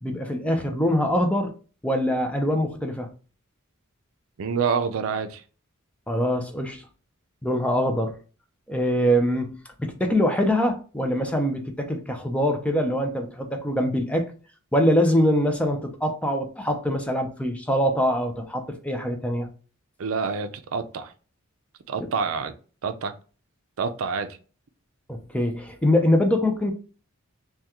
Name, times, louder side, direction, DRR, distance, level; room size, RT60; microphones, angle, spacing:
voice 1, 0.0-1.5 1.8-3.1 6.1-6.8 7.4-8.2 8.7-14.3 14.7-19.5 25.1-26.7, equal, 5° left, 0.4 m, -23 dB
voice 2, 4.4-5.4 20.0-21.1 21.9-22.5 22.8-23.1 23.8-24.3, right 5 dB, 75° right, 0.4 m, -27 dB
3.5 x 2.2 x 2.9 m
head